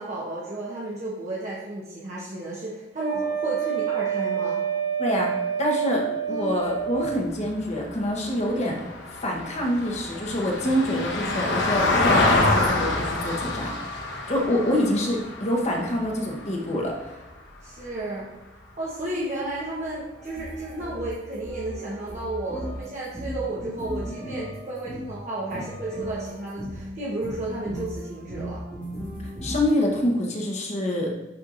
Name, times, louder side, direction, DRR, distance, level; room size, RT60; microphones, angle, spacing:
voice 1, 0.0-4.6 6.3-6.5 17.6-18.3 18.8-28.6, right 2 dB, 40° right, -7 dB, 1.1 m, -33 dB
Wind instrument woodwind instrument, 3.0-7.2, right 8 dB, 75° right, 2.3 m, -28 dB
voice 2, 5.0-8.8 9.2-13.7 14.3-17.0 29.2-31.1, left 1 dB, 35° left, -1 dB, 1.1 m, -26 dB
Vehicle, 6.8-17.2 19.5-19.6, left 2 dB, 65° left, 1.0 m, -27 dB
sound 1, 20.2-25.2 25.5-26.9 27.2-29.7, equal, 5° left, 1.9 m, -36 dB
10.5 x 4.6 x 2.6 m, 1.1 s
head